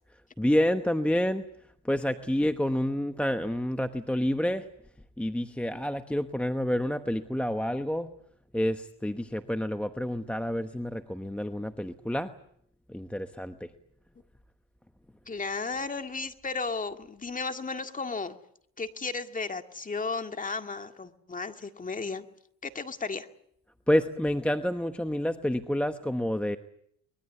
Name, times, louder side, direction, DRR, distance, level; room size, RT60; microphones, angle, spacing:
voice 1, 0.4-1.4 1.8-4.7 5.2-8.1 8.5-12.3 12.9-13.7 23.9-26.6, equal, 5° left, 8 dB, 1.1 m, -28 dB
voice 2, 15.3-18.4 18.8-22.3 22.6-23.3, left 4 dB, 20° left, 7 dB, 2.0 m, -34 dB
24.5 x 21.5 x 8.3 m, 0.70 s
supercardioid pair, 95°, 39 cm